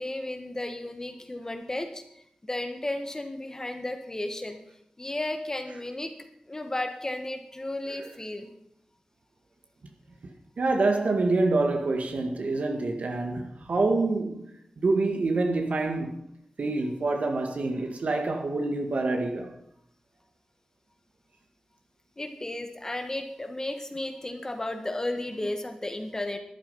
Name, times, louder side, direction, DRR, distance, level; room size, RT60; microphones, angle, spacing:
voice 1, 0.0-2.0 2.4-4.6 5.0-6.1 6.5-8.5 22.2-26.4, left 1 dB, 25° left, 1.7 m, -33 dB
voice 2, 10.6-14.5 14.8-16.1 16.6-19.5, right 3 dB, 75° right, 1.9 m, -26 dB
13.0 x 11.5 x 5.6 m
wide cardioid pair, 105°, 2 cm